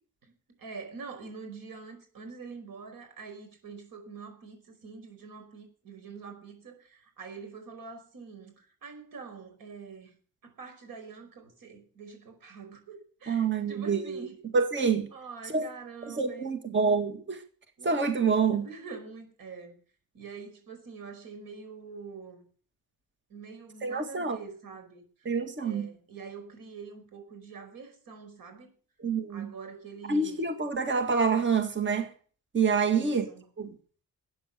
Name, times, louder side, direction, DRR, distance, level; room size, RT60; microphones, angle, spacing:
voice 1, 0.2-10.2 10.4-14.4 15.1-16.6 17.8-18.0 18.5-19.7 20.1-22.5 23.3-25.3 25.6-28.7 29.3-30.5 32.8-33.4, right 5 dB, 75° right, 5.1 m, -45 dB
voice 2, 13.3-14.2 14.5-15.1 15.5-15.7 16.1-17.4 17.8-18.7 23.8-24.4 25.3-25.9 29.0-29.5 30.1-32.1 32.5-33.2 33.6-33.7, right 5 dB, 35° right, 1.9 m, -27 dB
13.0 x 9.3 x 6.8 m
cardioid pair, 120°, 35 cm